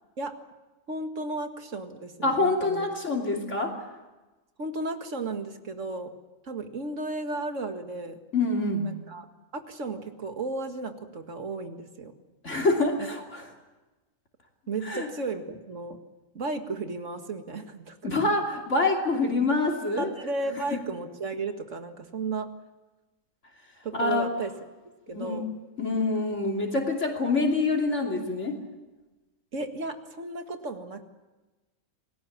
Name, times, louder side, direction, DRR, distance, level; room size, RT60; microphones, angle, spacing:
voice 1, 0.9-2.9 4.6-6.1 6.4-8.2 8.8-9.3 9.5-12.1 14.7-16.0 16.3-18.0 20.0-22.5 23.8-24.5 25.1-25.5 29.5-31.1, right 3 dB, 60° right, 6 dB, 2.2 m, -34 dB
voice 2, 2.2-3.7 8.3-8.9 12.4-13.5 14.8-15.1 18.0-20.1 23.9-24.3 25.1-25.4 25.8-28.6, left 3 dB, 55° left, 0 dB, 3.2 m, -26 dB
28.5 x 20.0 x 7.3 m, 1.1 s
omnidirectional pair, 1.5 m